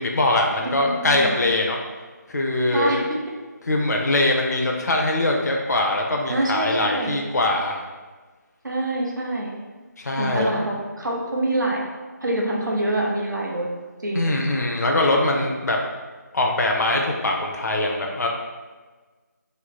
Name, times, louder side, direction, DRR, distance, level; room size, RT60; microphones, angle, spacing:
voice 1, 0.0-1.8 2.3-2.9 3.7-7.8 10.0-10.6 14.1-15.8 16.3-18.3, left 2 dB, 60° left, 0 dB, 0.5 m, -22 dB
voice 2, 0.6-1.5 2.7-3.0 6.3-7.1 8.6-9.5 10.2-11.8 12.2-13.7 14.0-14.4, right 1 dB, 85° right, -2 dB, 0.9 m, -26 dB
3.1 x 2.2 x 4.0 m, 1.3 s
figure-of-eight pair, 170°, 10 cm